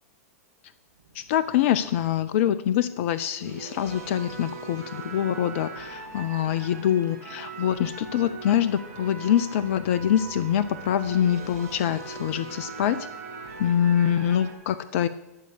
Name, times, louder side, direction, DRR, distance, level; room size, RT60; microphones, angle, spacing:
sound 1, 1.0-2.2 3.0-14.5, right 4 dB, 65° right, 2.7 m, -40 dB
voice 1, 1.1-13.1 13.6-15.1, left 10 dB, 55° left, 15 dB, 0.6 m, -25 dB
13.0 x 6.6 x 6.8 m, 0.98 s
figure-of-eight pair, 105°, 9 cm